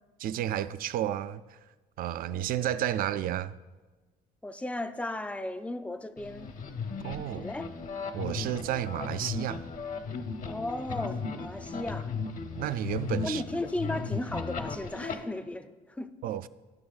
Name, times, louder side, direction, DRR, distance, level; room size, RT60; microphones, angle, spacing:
voice 1, 0.2-1.4 2.0-3.6 7.0-7.5 8.1-9.7 12.6-13.4 16.2-16.5, right 11 dB, 60° right, 0.4 m, -31 dB
voice 2, 4.4-6.5 7.3-7.7 10.4-12.1 13.2-16.2, left 1 dB, 10° left, 0.4 m, -35 dB
sound 1, 6.2-15.2, left 4 dB, 50° left, 0.8 m, -36 dB
16.0 x 6.0 x 2.4 m
cardioid pair, 110°, 17 cm